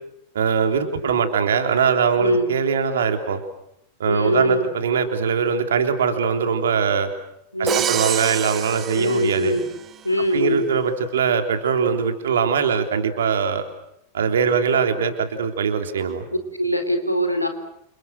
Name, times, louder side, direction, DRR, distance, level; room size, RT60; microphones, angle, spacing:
voice 1, 0.3-3.4 4.0-7.1 7.6-9.6 10.3-13.6 14.1-16.3, right 6 dB, 65° right, 6 dB, 3.6 m, -21 dB
voice 2, 2.2-2.5 4.0-4.7 7.5-7.9 8.9-9.7 10.0-10.7 14.9-15.0 16.5-17.5, equal, 90° left, 7 dB, 4.0 m, -22 dB
Crash cymbal, 7.7-9.9, right 9 dB, 25° right, 1.4 m, -27 dB
29.5 x 28.5 x 6.6 m, 0.78 s
figure-of-eight pair, 90°, 0 cm